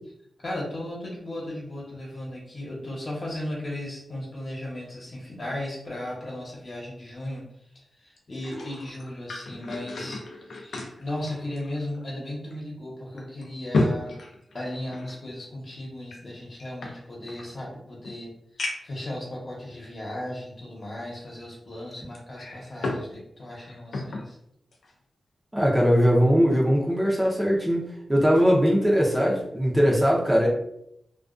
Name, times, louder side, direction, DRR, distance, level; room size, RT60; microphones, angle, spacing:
voice 1, 0.4-14.1 14.5-24.4, left 1 dB, 45° left, -4 dB, 0.9 m, -36 dB
sound 1, 8.2-12.2 12.5-12.6 13.2-15.2 16.0-17.5 18.0-18.1 18.6-19.0 19.8-19.9 22.1-23.1 23.4-24.3 24.7-24.9, left 2 dB, 85° left, 0.4 m, -32 dB
voice 2, 25.5-30.5, equal, 15° right, -3 dB, 0.6 m, -21 dB
2.3 x 2.2 x 2.4 m, 0.75 s
cardioid pair, 75°, 0 cm